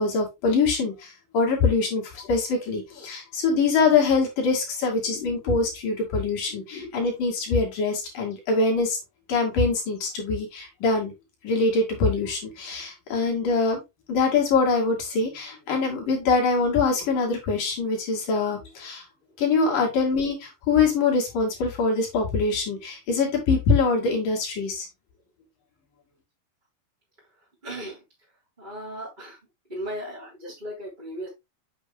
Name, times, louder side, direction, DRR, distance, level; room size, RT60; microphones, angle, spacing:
voice 1, 0.0-9.0 9.3-11.1 11.4-13.8 14.1-19.0 19.4-24.9, left 4 dB, 50° left, 1 dB, 3.8 m, -24 dB
voice 2, 27.6-28.0 28.6-29.4 29.7-31.3, equal, 10° right, -6 dB, 3.3 m, -36 dB
8.0 x 7.6 x 2.3 m, 0.21 s
omnidirectional pair, 5.5 m